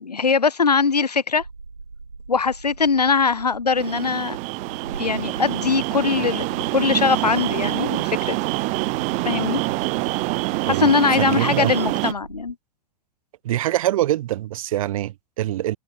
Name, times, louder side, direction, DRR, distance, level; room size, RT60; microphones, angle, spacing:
voice 1, 0.0-1.4 2.3-4.4 5.0-8.4 9.2-9.6 10.6-12.5, left 5 dB, 80° left, 2.9 m, -21 dB
sound 1, 1.4-12.5, right 4 dB, 85° right, 5.4 m, -39 dB
sound 2, 3.8-12.1, right 26 dB, 35° right, 0.9 m, -26 dB
voice 2, 11.2-11.7 13.4-15.8, right 14 dB, 55° right, 1.2 m, -24 dB
figure-of-eight pair, 100°, 20 cm